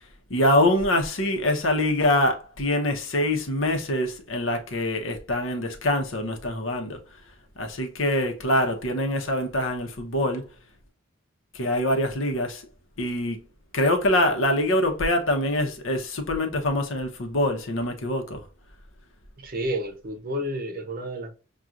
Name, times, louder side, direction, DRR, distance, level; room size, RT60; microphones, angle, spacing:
voice 1, 0.3-7.0 7.6-10.5 11.5-12.6 13.0-13.4 13.7-18.4, left 1 dB, 75° left, 0.9 m, -24 dB
voice 2, 19.4-21.3, equal, 45° right, 0.7 m, -30 dB
6.0 x 2.4 x 2.5 m
head